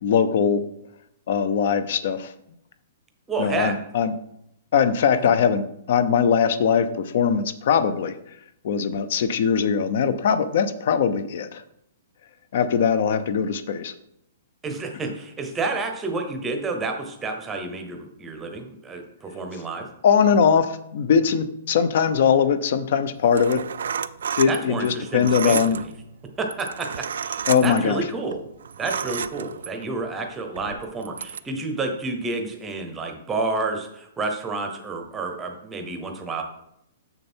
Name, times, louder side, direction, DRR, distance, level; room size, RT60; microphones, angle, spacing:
voice 1, 0.0-0.6 1.3-2.3 3.4-4.1 4.7-8.2 8.6-11.6 12.5-13.9 20.0-23.6 24.4-25.8 27.5-28.1, left 7 dB, 45° left, 12 dB, 0.6 m, -21 dB
voice 2, 3.3-3.8 5.2-5.3 14.6-19.9 24.5-25.9 26.4-28.4 28.8-36.4, right 3 dB, 10° right, 4 dB, 0.8 m, -30 dB
sound 1, 23.2-30.0 30.5-31.4, right 7 dB, 80° right, 0.4 m, -31 dB
6.8 x 6.7 x 4.4 m, 0.76 s
hypercardioid pair, 180°, 0 cm